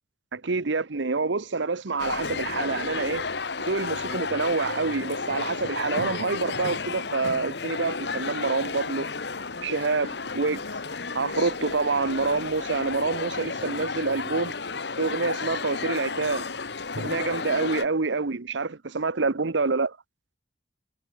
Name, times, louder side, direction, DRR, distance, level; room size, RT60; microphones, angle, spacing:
voice 1, 0.3-3.2 3.6-9.1 9.6-10.6 11.1-14.5 15.0-16.5 17.0-20.0, right 4 dB, 75° right, 0.9 m, -27 dB
sound 1, 2.0-17.9, left 4 dB, 65° left, 1.4 m, -32 dB
head